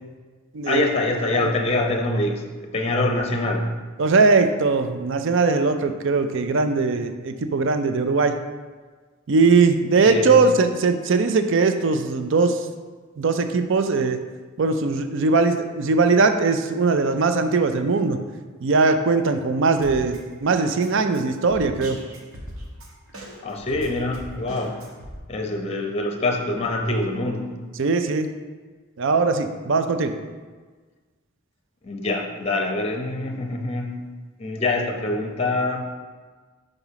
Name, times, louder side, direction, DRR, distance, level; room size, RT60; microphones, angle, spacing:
voice 1, 0.7-3.7 10.0-10.4 23.4-24.8 25.3-27.5 31.8-33.9 34.4-35.8, left 2 dB, 30° left, 3 dB, 0.7 m, -25 dB
voice 2, 4.0-8.3 9.3-12.7 13.2-14.2 14.6-18.2 18.6-22.0 27.8-28.3 29.0-30.1, right 4 dB, 60° right, 8 dB, 0.5 m, -20 dB
Drum kit, 19.8-25.2, equal, 75° right, 1.4 m, -39 dB
5.9 x 3.9 x 5.7 m, 1.4 s
head